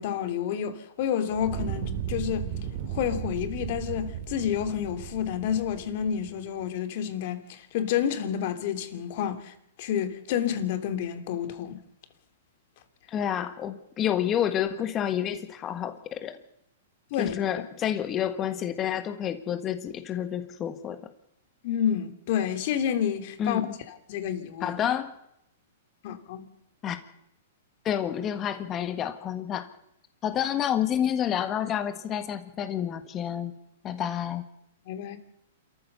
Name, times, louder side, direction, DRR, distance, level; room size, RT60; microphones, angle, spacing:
voice 1, 0.0-2.5 2.9-11.8 17.1-17.3 21.6-23.6 24.1-24.8 26.0-26.5 34.9-35.2, left 9 dB, 50° left, 2.6 m, -29 dB
Fire, 1.3-6.5, right 9 dB, 45° right, 3.0 m, -35 dB
voice 2, 13.1-16.4 17.2-21.0 23.4-23.7 24.6-25.1 26.8-27.0 27.8-29.7 30.2-33.5 33.8-34.4, left 9 dB, 25° left, 1.6 m, -29 dB
27.5 x 14.0 x 6.9 m
hypercardioid pair, 140°, 0 cm